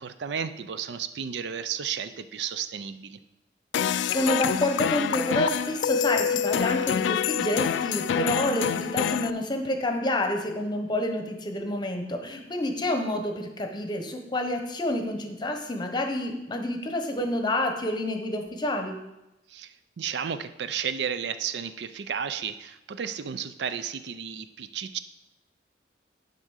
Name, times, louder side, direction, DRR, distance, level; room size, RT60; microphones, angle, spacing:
voice 1, 0.0-3.2 19.5-25.0, right 7 dB, 70° right, 11 dB, 0.4 m, -33 dB
sound 1, 3.7-9.3, left 8 dB, 85° left, 0.3 m, -26 dB
voice 2, 4.1-19.0, left 1 dB, 25° left, 4 dB, 0.9 m, -28 dB
10.0 x 3.7 x 6.3 m, 0.94 s
head